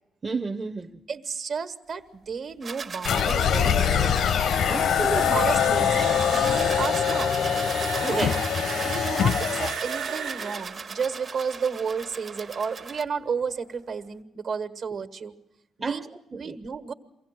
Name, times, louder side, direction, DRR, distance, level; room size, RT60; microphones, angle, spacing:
voice 1, 0.2-1.0 4.7-5.4 8.1-8.4 15.8-16.6, right 3 dB, 25° right, 0.7 m, -31 dB
voice 2, 1.1-4.1 5.0-7.3 8.0-8.2 8.7-15.3 15.8-16.9, right 5 dB, 60° right, 1.4 m, -32 dB
sound 1, 2.6-13.0, right 5 dB, 45° right, 1.0 m, -39 dB
sound 2, 3.0-9.8, left 8 dB, 70° left, 0.7 m, -23 dB
sound 3, 3.6-12.4, right 6 dB, 85° right, 1.2 m, -36 dB
23.0 x 16.0 x 7.6 m
cardioid pair, 90°, 0 cm